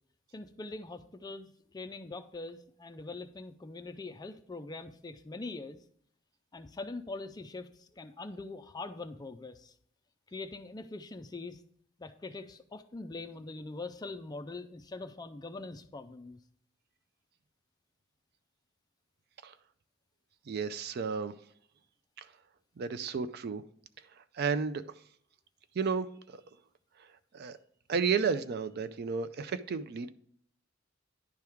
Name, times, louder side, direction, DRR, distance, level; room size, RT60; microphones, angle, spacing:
voice 1, 0.3-5.8 6.5-9.7 10.3-11.6 12.0-16.4, left 3 dB, 20° left, 10 dB, 0.4 m, -43 dB
voice 2, 20.5-21.4 22.2-22.3 22.8-23.6 24.2-24.8 25.8-26.4 27.3-27.6 27.9-30.1, right 5 dB, 50° right, 13 dB, 0.4 m, -32 dB
10.5 x 3.5 x 4.5 m, 0.64 s
head